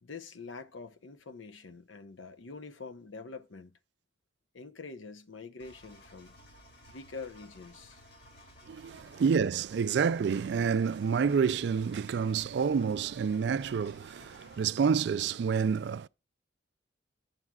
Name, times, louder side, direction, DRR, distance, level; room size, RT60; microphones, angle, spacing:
voice 1, 0.0-3.7 4.5-6.3 6.9-8.0, left 4 dB, 85° left, 0.8 m, -45 dB
Engine, 5.6-14.7, left 1 dB, 60° left, 2.7 m, -55 dB
voice 2, 8.7-16.1, right 6 dB, 60° right, 0.3 m, -28 dB
10.5 x 7.4 x 2.3 m
head